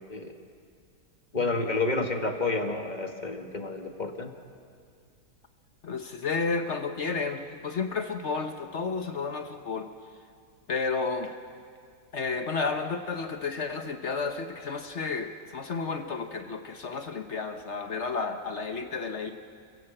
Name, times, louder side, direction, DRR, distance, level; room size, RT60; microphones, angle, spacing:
voice 1, 1.3-4.3, left 3 dB, 30° left, 4 dB, 1.7 m, -30 dB
voice 2, 5.8-9.9 10.7-11.3 12.1-19.3, left 4 dB, 50° left, 6 dB, 1.2 m, -32 dB
30.0 x 16.5 x 7.7 m, 2.3 s
omnidirectional pair, 1.6 m